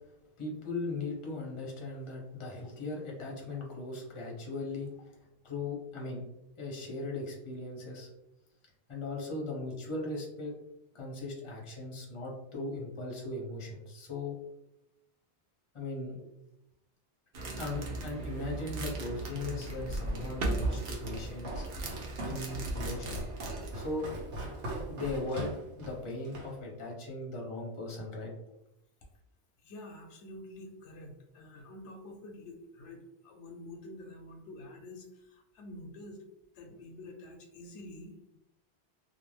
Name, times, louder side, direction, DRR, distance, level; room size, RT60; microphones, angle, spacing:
voice 1, 0.4-5.1 5.4-6.2 6.6-8.1 8.9-10.5 10.9-14.4 15.7-16.3 17.6-21.6 22.3-23.2 23.7-24.1 24.9-28.3, left 2 dB, 35° left, -1 dB, 0.6 m, -38 dB
sound 1, 17.3-23.8, right 2 dB, 60° right, 0.8 m, -37 dB
Walk footsteps, 20.1-26.5, right 1 dB, 90° right, 1.1 m, -41 dB
voice 2, 29.6-36.2 36.5-38.4, left 1 dB, 85° left, 3 dB, 0.9 m, -48 dB
2.5 x 2.2 x 3.1 m, 0.85 s
omnidirectional pair, 1.2 m